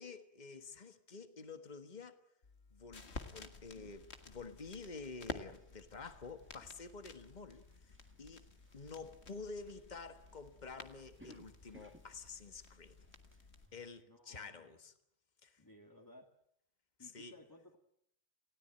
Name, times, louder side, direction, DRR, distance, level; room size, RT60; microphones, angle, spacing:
voice 1, 0.0-2.2 2.7-8.5 8.7-13.0 13.7-14.9 15.4-15.6 17.0-17.3, left 4 dB, 40° left, 1.7 m, -50 dB
sound 1, 2.4-13.7, left 4 dB, 75° left, 2.1 m, -52 dB
sound 2, 3.0-14.0, right 1 dB, 10° right, 1.6 m, -67 dB
voice 2, 14.1-14.7 15.6-16.3 17.0-17.8, left 1 dB, 20° left, 2.1 m, -59 dB
29.0 x 17.0 x 9.0 m
omnidirectional pair, 1.1 m